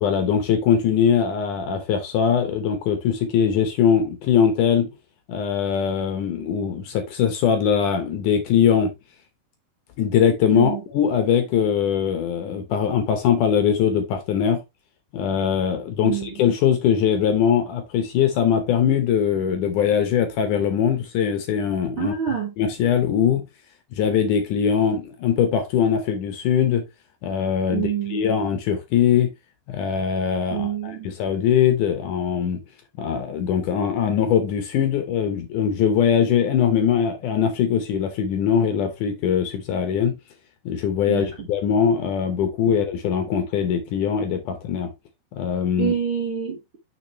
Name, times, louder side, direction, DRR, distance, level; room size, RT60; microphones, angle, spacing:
voice 1, 0.0-4.9 5.3-8.9 10.0-14.6 15.1-22.1 22.6-23.5 23.9-26.8 27.2-29.3 29.7-32.6 33.0-40.2 40.7-44.9 45.3-45.9, left 8 dB, 70° left, 2.1 m, -21 dB
voice 2, 10.5-10.8 16.0-16.4 22.0-22.5 27.7-28.2 30.5-31.1 41.1-41.5 42.7-42.8 45.8-46.8, right 8 dB, 50° right, 1.6 m, -27 dB
6.9 x 5.9 x 3.0 m
omnidirectional pair, 4.4 m